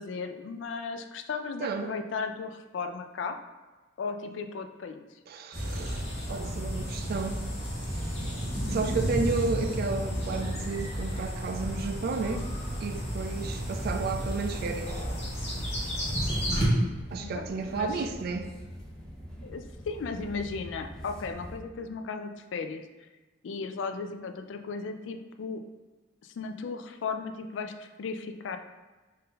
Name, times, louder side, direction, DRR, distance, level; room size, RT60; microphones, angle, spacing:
voice 1, 0.0-3.4 4.0-5.0 13.4-13.7 17.2-18.0 19.4-22.8 23.4-25.6 26.2-28.6, left 4 dB, 80° left, 0.4 m, -36 dB
voice 2, 1.6-1.9 5.3-6.0 6.3-7.4 7.9-8.1 8.7-12.5 12.8-15.0 17.1-18.5, right 4 dB, 55° right, 0.3 m, -32 dB
sound 1, 5.5-16.7, equal, 35° left, 1.0 m, -32 dB
sound 2, 16.0-21.6, equal, 5° left, 0.5 m, -44 dB
3.8 x 2.6 x 4.0 m
head